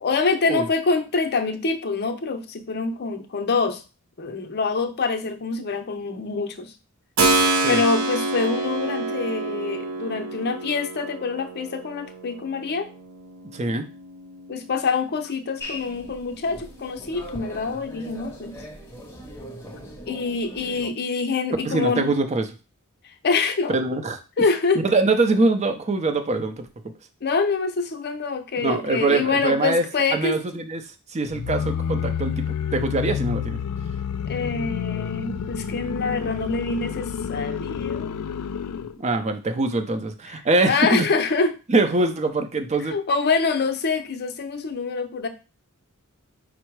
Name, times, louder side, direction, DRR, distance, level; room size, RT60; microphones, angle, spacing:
voice 1, 0.0-3.8 4.2-6.7 7.4-12.9 14.5-18.6 20.1-22.1 23.0-24.0 24.4-24.8 27.2-30.4 34.3-38.2 40.3-41.6 42.9-45.3, left 4 dB, 45° left, 6 dB, 0.6 m, -25 dB
Keyboard (musical), 7.2-15.8, right 2 dB, 70° right, 0.7 m, -28 dB
voice 2, 13.5-13.9 21.6-22.5 23.7-24.2 24.7-26.7 28.6-29.8 30.1-30.8 31.1-33.6 39.0-41.1 41.7-43.0, right 2 dB, 30° right, 7 dB, 0.5 m, -23 dB
sound 1, 15.6-20.9, left 1 dB, 10° left, 0.7 m, -40 dB
sound 2, 31.3-39.0, left 7 dB, 90° left, 0.4 m, -29 dB
5.5 x 2.0 x 4.5 m, 0.31 s
head